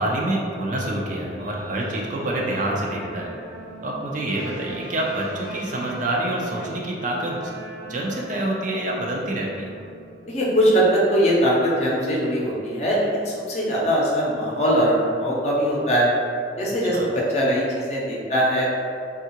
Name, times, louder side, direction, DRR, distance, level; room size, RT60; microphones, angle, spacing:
voice 1, 0.0-3.4 3.8-7.5 7.9-9.7 16.9-17.1, right 1 dB, 45° right, -2 dB, 0.4 m, -27 dB
Guitar, 0.9-11.5, right 2 dB, 80° right, 0.7 m, -42 dB
sound 1, 4.3-7.5, right 1 dB, 90° left, 0.5 m, -41 dB
voice 2, 10.3-16.1 16.6-18.7, equal, 40° left, -5 dB, 0.6 m, -21 dB
3.6 x 2.4 x 2.8 m, 2.4 s
head